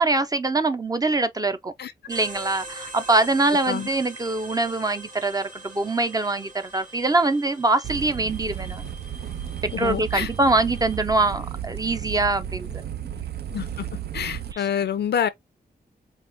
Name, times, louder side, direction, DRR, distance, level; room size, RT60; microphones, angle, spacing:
voice 1, 0.0-1.7 2.1-8.9 9.6-12.9 14.5-14.7, right 2 dB, 20° right, 0.5 m, -23 dB
sound 1, 2.1-11.0, right 2 dB, 50° right, 1.4 m, -43 dB
sound 2, 7.8-14.5, right 10 dB, 75° right, 0.5 m, -33 dB
voice 2, 9.7-10.3 13.5-13.9 14.1-15.3, left 8 dB, 80° left, 0.5 m, -27 dB
4.6 x 2.3 x 2.6 m
wide cardioid pair, 100°, 17 cm